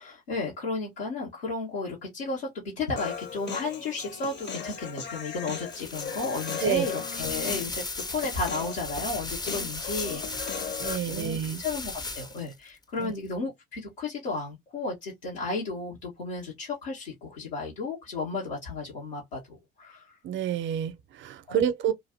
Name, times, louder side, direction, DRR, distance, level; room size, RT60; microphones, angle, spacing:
voice 1, 0.0-20.2 21.5-21.9, left 3 dB, 80° left, 1.5 m, -34 dB
Human voice, 3.0-11.0, left 6 dB, 35° left, 0.9 m, -37 dB
sound 1, 5.7-12.5, left 3 dB, 15° left, 0.6 m, -36 dB
voice 2, 10.8-11.6 13.0-13.1 20.2-21.9, right 9 dB, 40° right, 0.6 m, -28 dB
3.0 x 2.5 x 4.3 m
hypercardioid pair, 65°, 29 cm